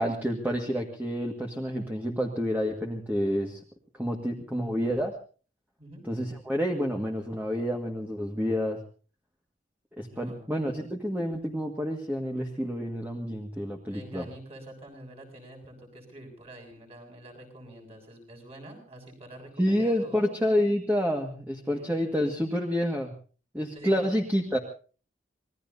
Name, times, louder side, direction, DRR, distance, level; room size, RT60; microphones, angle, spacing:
voice 1, 0.0-3.6 4.0-5.1 6.1-8.8 10.0-14.3 19.6-23.1 23.5-24.6, equal, 10° right, 1 dB, 1.8 m, -28 dB
voice 2, 10.1-10.5 13.8-20.3 21.6-21.9 23.7-24.1, right 1 dB, 35° right, 2 dB, 7.0 m, -46 dB
26.5 x 20.0 x 2.7 m, 0.39 s
head